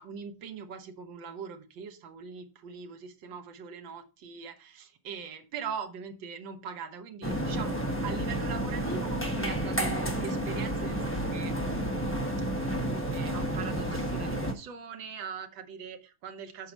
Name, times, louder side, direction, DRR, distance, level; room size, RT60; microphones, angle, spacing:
voice 1, 0.0-12.2 12.8-16.7, right 6 dB, 65° right, 5 dB, 1.8 m, -42 dB
sound 1, 7.2-14.5, right 1 dB, 10° left, 0.6 m, -31 dB
6.7 x 4.7 x 6.0 m, 0.31 s
omnidirectional pair, 2.3 m